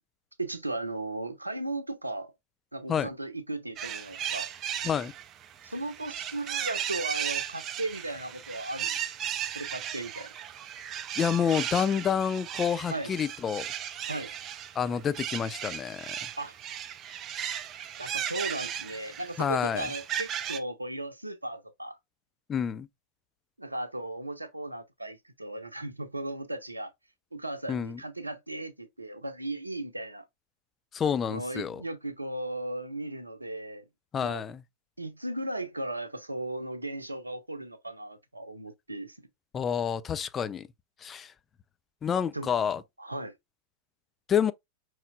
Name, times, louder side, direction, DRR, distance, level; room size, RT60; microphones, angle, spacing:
voice 1, 0.4-2.3 2.7-4.5 5.6-9.0 9.5-10.3 12.9-13.1 14.1-14.3 16.4-16.5 18.0-22.0 23.6-26.9 27.3-30.2 31.3-33.9 34.2-34.4 35.0-39.2 42.3-42.5 43.0-43.3, right 1 dB, 85° right, 0.7 m, -36 dB
sound 1, 3.8-20.6, right 10 dB, 30° right, 0.5 m, -36 dB
voice 2, 11.2-13.7 14.8-16.2 19.4-19.9 22.5-22.9 27.7-28.0 30.9-31.8 34.1-34.6 39.5-40.7 41.0-41.3 42.0-42.8 44.3-44.5, left 7 dB, 25° left, 0.4 m, -28 dB
5.5 x 3.1 x 2.3 m
figure-of-eight pair, 90°, 0 cm